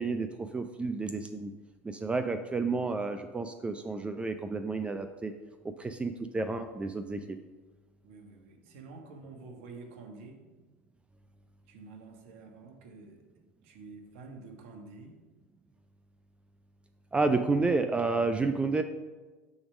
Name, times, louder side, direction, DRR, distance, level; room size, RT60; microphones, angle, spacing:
voice 1, 0.0-1.5 1.8-5.3 5.8-7.4 17.1-18.8, right 3 dB, 15° right, 8 dB, 0.4 m, -30 dB
voice 2, 8.0-10.4 11.7-13.2 13.6-15.1, right 3 dB, 75° right, 3 dB, 1.3 m, -48 dB
7.0 x 3.5 x 6.3 m, 1.3 s
hypercardioid pair, 90°, 7 cm